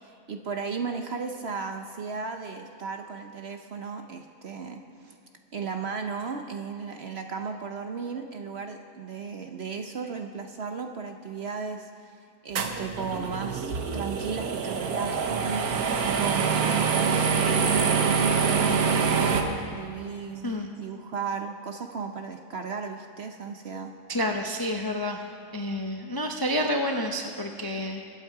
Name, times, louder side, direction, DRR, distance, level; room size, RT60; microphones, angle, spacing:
voice 1, 0.0-5.2 5.5-12.1 12.4-15.9 16.1-23.9, right 5 dB, 55° right, 5 dB, 0.8 m, -35 dB
sound 1, 12.6-19.4, right 5 dB, 70° right, 1.4 m, -25 dB
voice 2, 24.1-25.2 25.5-28.1, left 1 dB, 25° left, 3 dB, 0.5 m, -29 dB
23.0 x 8.2 x 4.7 m, 2.5 s
omnidirectional pair, 1.6 m